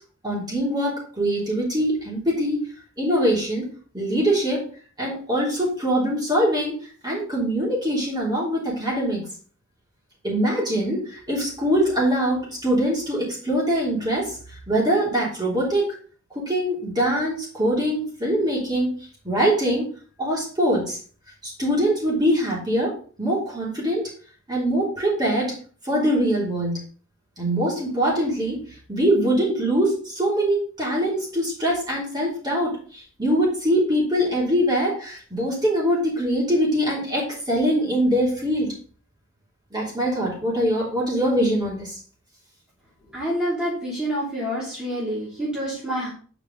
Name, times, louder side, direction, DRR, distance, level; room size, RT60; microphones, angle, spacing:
voice 1, 0.2-2.7 3.0-3.7 3.9-4.6 5.0-9.2 10.2-14.4 14.7-15.9 16.3-18.9 19.2-19.9 20.2-21.0 21.4-22.9 23.2-24.0 24.5-25.5 25.8-26.8 27.4-28.6 28.9-38.7 39.7-42.0, equal, 20° right, -5 dB, 3.1 m, -23 dB
voice 2, 43.1-46.1, equal, 5° right, -9 dB, 2.8 m, -27 dB
8.7 x 5.3 x 3.9 m, 0.42 s
head